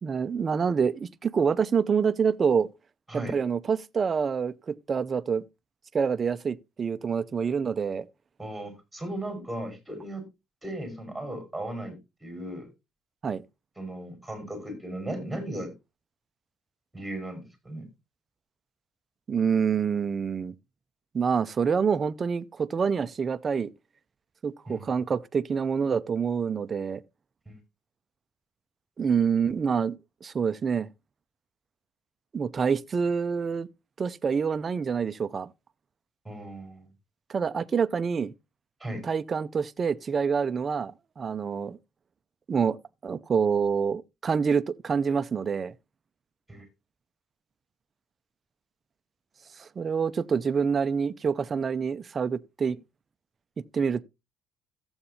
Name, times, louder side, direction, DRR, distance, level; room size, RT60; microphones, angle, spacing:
voice 1, 0.0-2.7 3.1-5.4 5.9-8.1 13.2-13.4 19.3-20.5 21.1-23.7 24.4-27.0 29.0-30.9 32.3-33.7 34.0-35.5 37.3-38.3 39.0-41.8 42.5-45.7 49.6-52.8 53.6-54.0, right 6 dB, 35° right, 0.5 m, -27 dB
voice 2, 8.4-10.2 10.6-12.7 13.8-15.7 16.9-17.9 24.7-24.9 27.5-27.6 36.2-36.9 38.8-39.0 46.5-46.7, right 1 dB, 5° right, 5.2 m, -36 dB
14.0 x 7.9 x 2.8 m
cardioid pair, 95°, 0 cm